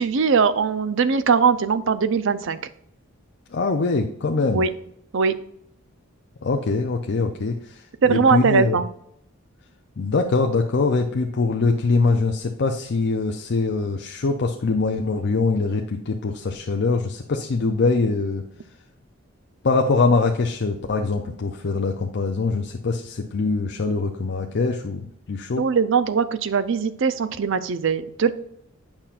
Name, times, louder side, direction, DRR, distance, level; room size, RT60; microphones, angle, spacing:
voice 1, 0.0-2.6 4.5-4.7 5.1-5.3 8.0-8.9 25.6-28.3, right 5 dB, 65° right, 13 dB, 0.5 m, -20 dB
voice 2, 3.5-4.7 6.4-8.8 10.0-18.4 19.6-25.7, left 3 dB, 55° left, 3 dB, 0.5 m, -23 dB
8.8 x 5.7 x 2.5 m, 0.73 s
head